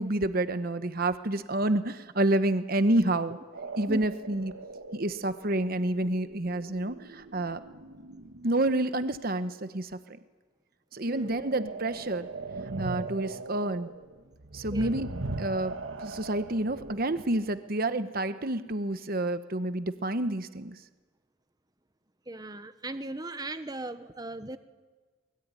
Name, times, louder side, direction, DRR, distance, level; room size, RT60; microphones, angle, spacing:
voice 1, 0.0-3.4 3.8-4.5 4.9-7.6 8.4-10.0 10.9-12.3 12.8-13.9 14.5-15.7 16.0-20.8, right 1 dB, 45° right, 11 dB, 1.1 m, -29 dB
sound 1, 3.5-8.7 11.2-17.6, right 3 dB, 80° right, 1.5 m, -40 dB
voice 2, 11.1-11.4 14.7-15.0 22.3-24.6, right 2 dB, 20° right, 10 dB, 1.0 m, -38 dB
23.0 x 22.0 x 9.7 m, 1.3 s
head